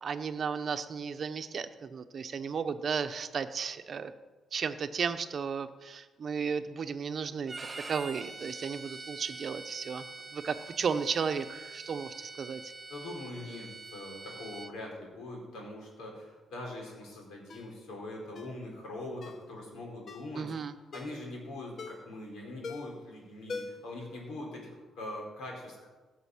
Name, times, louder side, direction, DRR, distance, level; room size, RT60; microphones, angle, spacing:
voice 1, 0.0-4.1 4.5-7.5 7.9-10.0 10.3-12.6 20.4-20.7, right 6 dB, 50° right, 10 dB, 0.9 m, -34 dB
Bowed string instrument, 7.5-14.7, right 3 dB, 25° right, 1.6 m, -45 dB
voice 2, 12.9-20.5 20.9-25.9, left 1 dB, 80° left, -1 dB, 4.3 m, -42 dB
Ringtone, 17.5-17.7 18.4-18.6 19.2-19.5 20.1-20.3 20.9-21.2 21.8-22.1 22.6-23.0 23.5-23.9 24.3-24.4, left 4 dB, 50° left, 1.0 m, -42 dB
16.0 x 6.3 x 6.3 m, 1.2 s
cardioid pair, 90°, 0 cm